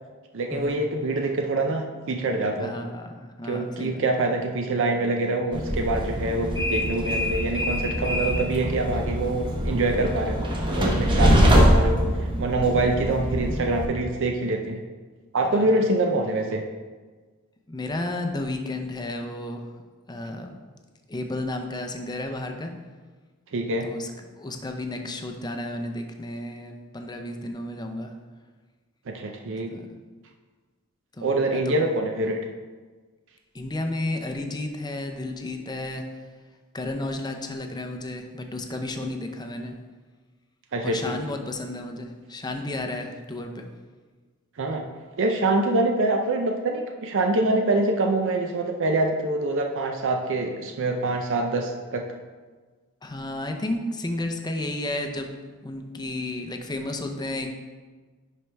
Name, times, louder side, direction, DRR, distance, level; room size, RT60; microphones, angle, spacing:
voice 1, 0.3-2.7 3.4-10.4 10.8-12.0 12.4-14.8 15.3-16.6 23.5-23.9 29.1-29.7 31.2-32.4 40.7-41.2 44.6-44.8 45.2-52.0, right 2 dB, 60° right, 3 dB, 0.6 m, -25 dB
voice 2, 2.6-4.3 11.1-11.5 12.7-13.0 15.5-15.8 17.7-19.7 20.1-20.5 21.1-22.7 23.8-24.1 24.4-28.1 29.7-30.0 31.1-31.8 33.5-36.0 36.7-39.8 40.8-43.7 53.0-55.3 55.6-57.5, left 1 dB, 20° left, 4 dB, 0.6 m, -32 dB
Train, 5.5-13.9, equal, 20° right, 1.0 m, -23 dB
10.5 x 4.6 x 3.4 m, 1.4 s
head